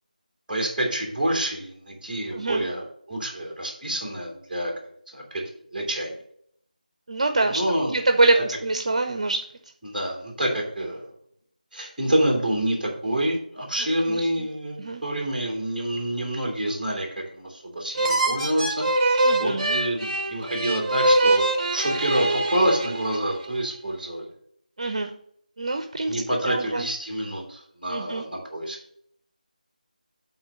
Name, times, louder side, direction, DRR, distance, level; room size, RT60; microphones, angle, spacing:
voice 1, 0.5-4.7 5.1-5.4 5.7-6.1 7.5-7.9 8.3-8.4 9.8-11.1 11.7-21.4 21.7-24.3 26.1-28.8, right 1 dB, 5° right, -6 dB, 2.4 m, -27 dB
voice 2, 2.3-2.6 7.1-7.6 7.9-9.4 14.1-14.5 14.8-15.0 19.2-19.8 24.8-25.1 25.6-26.2 26.4-26.9 27.9-28.2, right 2 dB, 45° right, 6 dB, 0.7 m, -24 dB
sound 1, 17.9-23.5, right 2 dB, 30° right, 1.1 m, -24 dB
8.6 x 3.9 x 6.0 m, 0.66 s
figure-of-eight pair, 165°, 5 cm